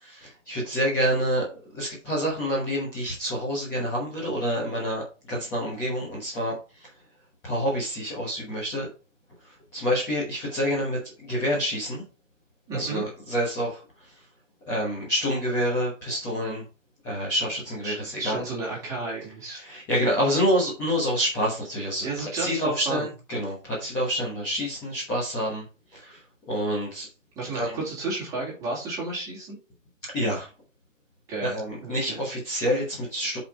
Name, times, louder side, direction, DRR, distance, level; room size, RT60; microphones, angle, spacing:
voice 1, 0.0-1.5 1.7-5.0 5.3-6.9 7.4-8.9 9.4-12.0 12.7-13.8 14.7-16.6 17.0-18.4 19.5-25.6 25.9-26.2 26.5-27.1 27.5-27.8 30.1-30.5 31.4-33.4, equal, 10° left, -6 dB, 1.2 m, -27 dB
voice 2, 12.7-13.0 17.8-19.6 22.0-23.1 27.4-29.6 31.3-31.5 31.8-32.2, right 3 dB, 10° right, -6 dB, 2.4 m, -32 dB
6.8 x 5.0 x 4.8 m, 0.32 s
hypercardioid pair, 175°, 38 cm